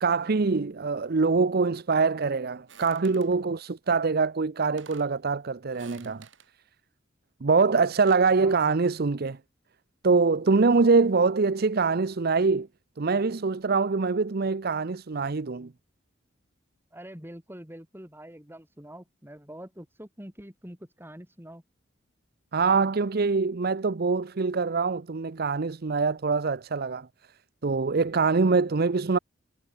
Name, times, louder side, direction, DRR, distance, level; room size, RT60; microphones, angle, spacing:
voice 1, 0.0-6.3 7.4-9.4 10.0-12.7 13.0-15.7 22.5-27.1 27.6-29.2, right 4 dB, 55° right, 0.6 m, -24 dB
sound 1, 2.7-3.4 4.3-4.4 4.6-5.2 5.7-6.5 7.7-8.3, right 6 dB, 75° right, 5.7 m, -52 dB
voice 2, 8.4-8.8 16.9-21.6, equal, 10° right, 6.3 m, -45 dB
head